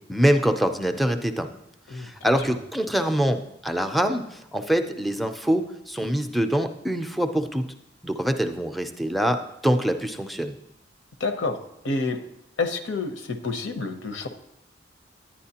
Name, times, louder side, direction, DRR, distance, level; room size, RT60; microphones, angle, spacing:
voice 1, 0.1-1.5 1.9-7.7 8.0-10.5, equal, ahead, 7 dB, 0.4 m, -24 dB
voice 2, 11.2-11.6 11.8-12.2 12.6-14.3, left 3 dB, 85° left, 7 dB, 0.8 m, -28 dB
10.0 x 9.9 x 2.8 m, 0.85 s
head